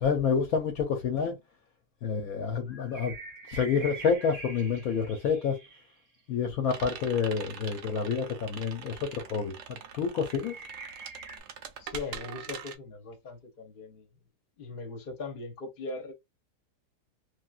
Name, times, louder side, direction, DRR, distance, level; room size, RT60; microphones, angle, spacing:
voice 1, 0.0-1.4 2.0-3.1 3.5-5.6 6.3-10.6, left 6 dB, 65° left, 1.0 m, -28 dB
sound 1, 2.7-6.0 10.3-11.4, right 3 dB, 30° right, 0.9 m, -44 dB
sound 2, 6.7-12.8, right 7 dB, 75° right, 0.6 m, -43 dB
voice 2, 11.8-14.1 14.6-16.1, left 3 dB, 40° left, 0.8 m, -40 dB
3.1 x 2.6 x 2.3 m
omnidirectional pair, 1.8 m